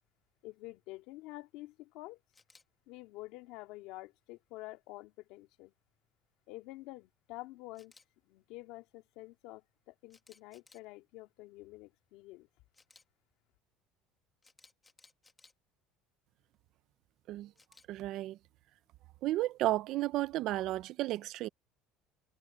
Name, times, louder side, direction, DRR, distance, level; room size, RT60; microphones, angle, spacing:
voice 1, 0.4-2.2 2.9-5.7 6.5-7.9 8.3-12.5, left 19 dB, 70° left, 2.2 m, -48 dB
Camera, 2.3-2.6 7.7-8.0 10.1-10.8 12.7-13.0 14.4-15.5 17.6-17.9, left 3 dB, 15° left, 1.7 m, -61 dB
voice 2, 17.9-18.4 19.2-21.5, right 16 dB, 55° right, 0.5 m, -33 dB
cardioid pair, 145°, 0 cm